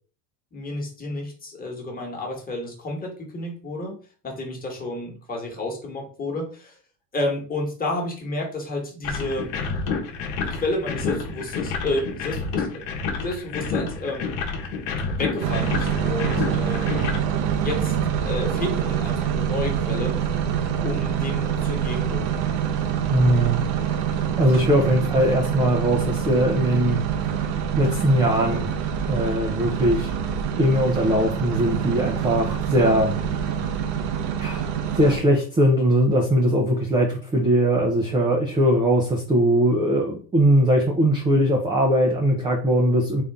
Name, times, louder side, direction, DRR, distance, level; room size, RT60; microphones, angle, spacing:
voice 1, 0.5-6.7 7.1-9.5 10.5-12.8 13.2-14.3 15.1-17.0 17.6-17.9 18.2-20.3 20.8-22.4, left 2 dB, 20° left, 0 dB, 1.3 m, -31 dB
sound 1, 9.0-17.2, left 4 dB, 65° left, 1.0 m, -29 dB
sound 2, 15.4-35.2, right 8 dB, 65° right, 0.8 m, -25 dB
voice 2, 23.1-23.6 24.1-27.0 27.8-28.7 29.1-30.1 30.6-33.1 33.4-33.5 34.4-34.7 35.0-43.2, equal, 10° right, 0 dB, 0.4 m, -20 dB
3.8 x 2.6 x 3.4 m, 0.40 s
supercardioid pair, 130°, 46 cm